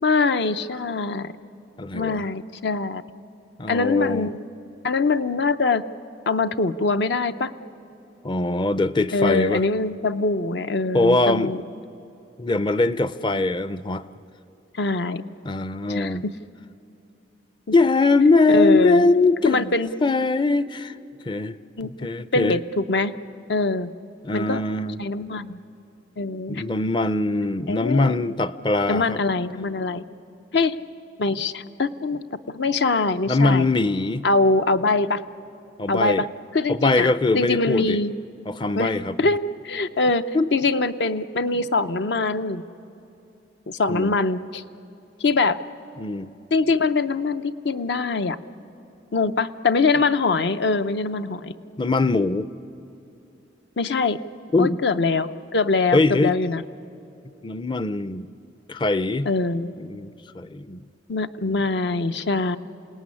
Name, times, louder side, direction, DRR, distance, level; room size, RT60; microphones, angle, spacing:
voice 1, 0.0-1.3 1.9-3.0 3.7-4.4 4.8-5.8 6.3-7.5 9.1-11.6 14.8-15.2 15.9-16.3 18.5-19.0 19.4-19.9 21.8-21.9 22.3-23.1 23.5-23.9 24.3-24.6 25.0-25.6 26.2-26.6 27.7-28.1 28.9-30.0 30.5-30.7 31.2-33.7 34.2-35.2 35.9-36.3 36.5-37.1 37.3-38.1 38.7-38.9 39.2-40.2 40.5-42.6 43.7-44.6 45.2-45.6 46.5-48.4 49.1-51.5 53.8-54.2 54.6-56.6 59.3-59.7 61.1-62.6, left 3 dB, 65° left, 11 dB, 0.7 m, -23 dB
voice 2, 1.8-2.3 3.6-4.3 8.2-9.6 10.9-11.5 12.4-14.1 15.4-16.2 17.7-19.7 20.0-21.0 21.3-21.6 22.0-22.6 24.2-25.0 26.5-29.2 33.3-34.3 35.8-36.3 36.7-38.0 38.5-39.2 40.3-40.5 43.9-44.2 46.0-46.3 51.8-52.5 54.5-54.8 55.9-56.3 57.4-58.3 58.7-59.3 59.8-60.8 61.5-61.6, left 2 dB, 25° left, 15 dB, 0.5 m, -22 dB
28.0 x 18.5 x 9.8 m, 2.8 s
head